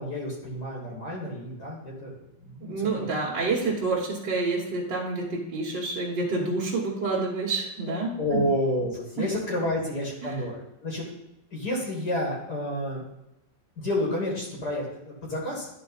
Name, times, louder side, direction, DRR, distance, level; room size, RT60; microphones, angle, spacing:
voice 1, 0.0-2.1 2.4-3.1 8.2-11.0 11.5-13.0 13.8-15.7, left 1 dB, 60° left, -2 dB, 2.2 m, -30 dB
voice 2, 2.6-8.4 9.2-9.3 10.2-10.4, right 3 dB, 75° right, -5 dB, 2.0 m, -28 dB
11.5 x 4.2 x 4.0 m, 0.90 s
omnidirectional pair, 1.9 m